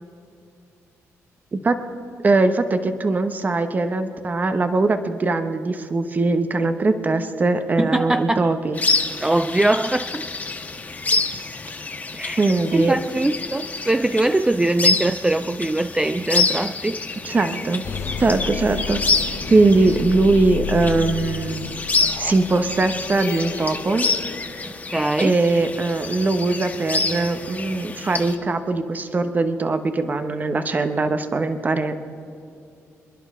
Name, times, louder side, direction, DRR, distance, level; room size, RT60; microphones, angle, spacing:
voice 1, 2.2-8.8 12.4-13.0 17.2-17.8 18.2-19.0 19.5-21.7 22.2-24.1 25.2-31.9, right 3 dB, 30° right, 9 dB, 1.0 m, -21 dB
voice 2, 7.8-8.5 9.2-10.3 12.2-17.0 24.9-25.4, right 2 dB, 10° right, 11 dB, 0.4 m, -22 dB
sound 1, 8.7-28.3, left 3 dB, 30° left, 1.4 m, -27 dB
sound 2, 17.8-24.4, left 5 dB, 60° left, 0.9 m, -32 dB
27.5 x 11.0 x 3.7 m, 2.5 s
cardioid pair, 95°, 6 cm